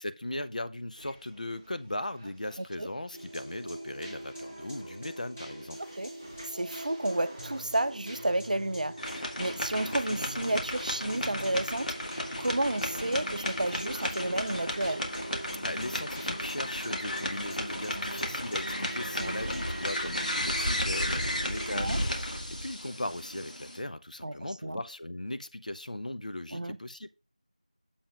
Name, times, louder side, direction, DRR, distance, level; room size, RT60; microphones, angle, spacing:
voice 1, 0.0-5.8 15.6-27.1, left 1 dB, 75° left, 0.6 m, -38 dB
sound 1, 0.9-20.3, right 1 dB, 10° right, 0.5 m, -53 dB
sound 2, 3.1-21.9, right 1 dB, 10° left, 1.1 m, -43 dB
voice 2, 5.8-6.1 6.4-11.9 12.4-15.1 19.2-19.5 21.7-22.0 24.2-24.8 26.5-26.8, right 1 dB, 80° right, 0.5 m, -31 dB
sound 3, 9.0-23.8, left 1 dB, 90° left, 1.8 m, -34 dB
8.6 x 7.1 x 2.5 m
figure-of-eight pair, 180°, 4 cm